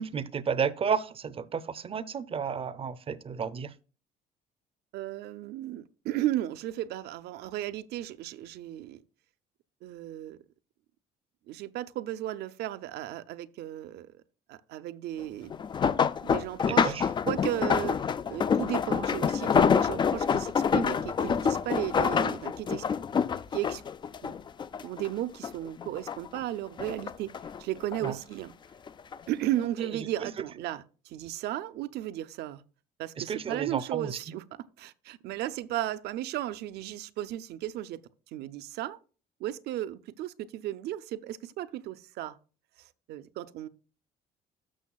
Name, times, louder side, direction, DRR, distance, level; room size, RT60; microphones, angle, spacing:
voice 1, 0.0-3.7 16.6-17.0 28.0-28.2 30.2-30.3 33.2-34.2, right 6 dB, 35° right, 0.6 m, -32 dB
voice 2, 4.9-9.0 9.8-10.4 11.5-14.1 14.5-15.5 16.2-16.9 17.2-18.0 18.3-22.9 23.5-23.8 24.2-24.3 24.8-27.3 27.6-28.5 29.3-32.6 33.0-38.0 38.3-39.0 39.4-42.4 43.1-43.7, right 13 dB, 80° right, 0.6 m, -35 dB
sound 1, 15.5-25.1 25.4-26.4 26.8-28.1 28.9-29.2 29.6-29.7, left 6 dB, 25° left, 0.3 m, -27 dB
12.5 x 6.4 x 2.3 m
cardioid pair, 110°, 17 cm